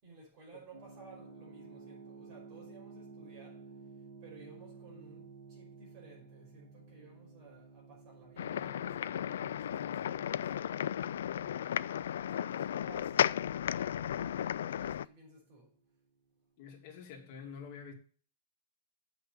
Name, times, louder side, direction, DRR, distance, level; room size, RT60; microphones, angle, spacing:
voice 1, 0.0-3.7 4.2-11.0 11.6-15.8, right 4 dB, 30° right, 5.4 m, -57 dB
sound 1, 0.7-15.5, right 4 dB, 60° right, 3.8 m, -55 dB
sound 2, 8.4-15.1, left 10 dB, 80° left, 0.3 m, -34 dB
voice 2, 16.6-17.9, left 6 dB, 35° left, 2.4 m, -47 dB
8.0 x 5.9 x 7.5 m
supercardioid pair, 175°, 0 cm